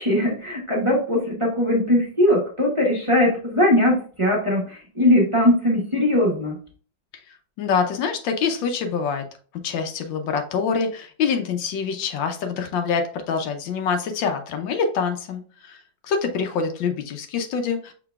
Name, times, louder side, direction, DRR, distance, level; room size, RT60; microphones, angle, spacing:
voice 1, 0.0-6.6, left 1 dB, 20° right, -4 dB, 1.0 m, -20 dB
voice 2, 7.6-9.3 9.6-15.8 16.0-17.9, left 5 dB, 80° left, 6 dB, 1.5 m, -25 dB
5.9 x 3.8 x 2.3 m, 0.42 s
omnidirectional pair, 2.0 m